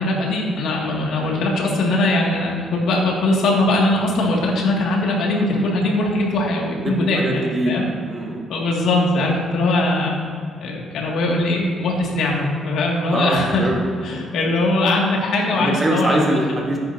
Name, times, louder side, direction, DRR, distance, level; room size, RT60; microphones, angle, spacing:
voice 1, 0.0-7.4 7.7-7.9 8.5-10.2 10.6-13.6 14.0-16.4, left 2 dB, 80° left, -2 dB, 2.2 m, -20 dB
voice 2, 6.8-8.5 13.1-13.8 14.1-14.2 15.5-16.8, right 1 dB, 25° right, -1 dB, 1.6 m, -23 dB
14.0 x 9.4 x 2.8 m, 2.2 s
cardioid pair, 90°, 0 cm